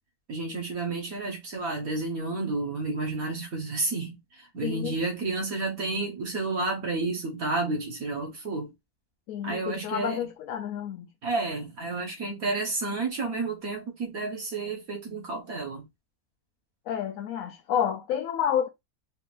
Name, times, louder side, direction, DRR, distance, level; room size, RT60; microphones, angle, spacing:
voice 1, 0.3-8.7 9.4-10.2 11.2-15.8, right 3 dB, 70° right, 1.6 m, -31 dB
voice 2, 4.6-5.0 9.3-11.1 16.9-18.7, left 9 dB, 70° left, 0.9 m, -29 dB
4.5 x 3.4 x 2.5 m
omnidirectional pair, 1.6 m